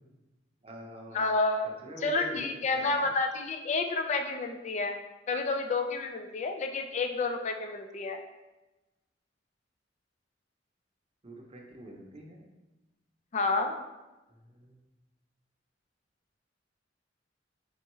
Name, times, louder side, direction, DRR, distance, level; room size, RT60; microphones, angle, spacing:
voice 1, 0.6-1.2 1.8-2.5 2.7-3.1 11.2-12.4 14.6-14.8, right 1 dB, 30° right, 0 dB, 0.7 m, -45 dB
voice 2, 1.1-1.7 2.0-5.0 5.3-8.2 13.3-13.7, left 3 dB, 40° left, 5 dB, 0.4 m, -30 dB
4.4 x 3.4 x 3.0 m, 1.0 s
head